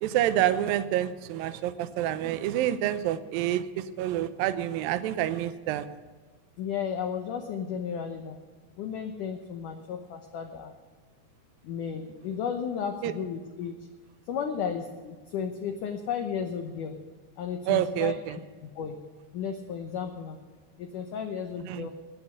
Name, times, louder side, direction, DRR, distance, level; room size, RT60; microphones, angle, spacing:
voice 1, 0.0-5.9 13.0-13.1 17.7-18.4 21.7-21.9, right 12 dB, 80° right, 12 dB, 2.1 m, -28 dB
voice 2, 6.6-8.4 8.8-10.7 11.6-13.8 14.3-17.0 17.4-19.0 19.3-20.4 20.8-21.9, left 7 dB, 75° left, 5 dB, 1.9 m, -34 dB
16.5 x 9.9 x 5.9 m, 1.4 s
omnidirectional pair, 4.9 m